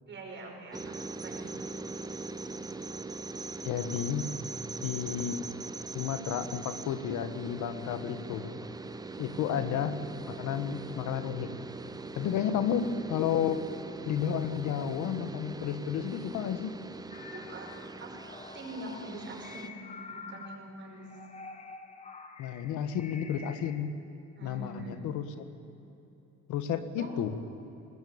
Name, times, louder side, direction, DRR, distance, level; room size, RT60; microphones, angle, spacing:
voice 1, 0.1-1.5 9.3-9.6 17.3-17.7 18.0-18.1 18.5-19.8 20.1-21.1 24.4-25.0 27.0-27.1, right 2 dB, 40° right, 0 dB, 5.7 m, -44 dB
sound 1, 0.7-19.7, right 3 dB, 15° right, 0.7 m, -41 dB
voice 2, 3.6-4.3 4.8-5.5 5.9-8.6 9.2-10.0 10.3-11.5 12.1-13.7 14.0-16.7 22.4-23.9 24.4-25.5 26.5-27.4, left 8 dB, 85° left, 11 dB, 1.6 m, -32 dB
sound 2, 17.1-23.9, left 4 dB, 25° left, 1.7 m, -48 dB
21.0 x 20.0 x 8.8 m, 2.9 s
cardioid pair, 155°, 29 cm